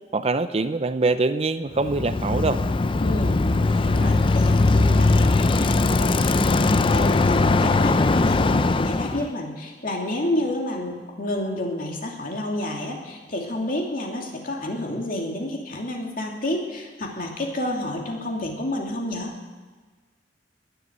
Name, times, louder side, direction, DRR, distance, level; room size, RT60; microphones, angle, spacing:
voice 1, 0.1-2.6, right 3 dB, 35° right, 11 dB, 0.6 m, -23 dB
Bicycle, 1.8-9.3, left 3 dB, 30° left, 0.5 m, -20 dB
voice 2, 2.9-6.4 6.7-19.3, left 1 dB, 50° left, 0 dB, 2.7 m, -30 dB
20.5 x 8.0 x 8.1 m, 1.4 s
head